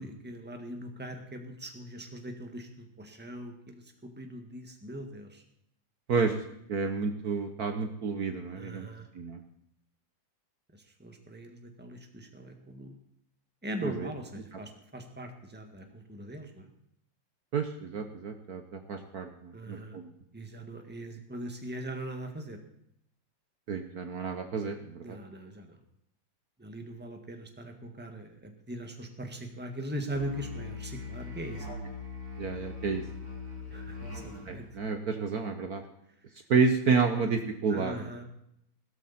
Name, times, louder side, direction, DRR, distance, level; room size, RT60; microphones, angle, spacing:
voice 1, 0.0-5.4 8.5-9.1 10.7-12.9 13.6-16.7 19.5-20.0 20.3-22.6 25.0-25.8 26.6-31.7 33.7-34.6 37.7-38.3, right 1 dB, 5° right, 4 dB, 1.5 m, -41 dB
voice 2, 6.7-8.9 9.1-9.4 13.8-14.1 17.5-20.1 23.7-25.2 32.4-33.0 34.5-35.8 36.5-38.1, right 5 dB, 55° right, 6 dB, 1.4 m, -30 dB
Musical instrument, 30.1-34.6, left 3 dB, 35° right, 3.9 m, -41 dB
16.5 x 13.0 x 4.3 m, 0.76 s
omnidirectional pair, 2.1 m